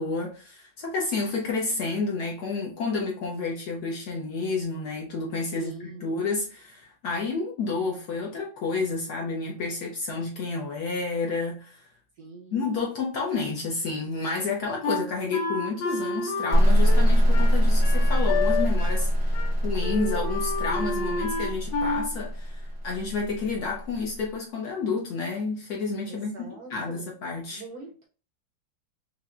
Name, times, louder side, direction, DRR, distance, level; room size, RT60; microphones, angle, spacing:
voice 1, 0.0-11.9 12.5-19.4 19.6-26.3 26.7-27.6, left 4 dB, 65° left, 1.0 m, -30 dB
voice 2, 5.5-6.0 12.2-12.7 26.0-27.1 27.5-28.1, right 3 dB, 65° right, 1.0 m, -43 dB
Wind instrument woodwind instrument, 14.8-19.1 19.3-19.5 19.8-22.1, left 3 dB, 85° left, 1.5 m, -30 dB
sound 1, 16.5-24.1, equal, 40° right, 0.4 m, -23 dB
5.8 x 2.2 x 2.4 m
omnidirectional pair, 2.2 m